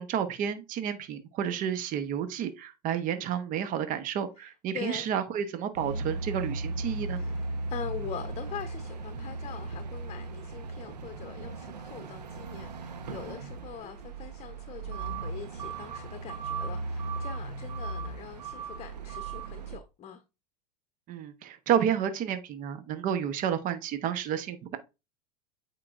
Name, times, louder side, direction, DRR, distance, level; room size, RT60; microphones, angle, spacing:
voice 1, 0.0-7.2 21.1-24.8, right 9 dB, 40° right, 0.9 m, -31 dB
voice 2, 4.4-5.1 7.0-20.2, left 8 dB, 30° left, 0.9 m, -43 dB
sound 1, 5.7-19.8, right 3 dB, 90° right, 0.9 m, -37 dB
8.6 x 4.6 x 2.5 m
hypercardioid pair, 95°, 20 cm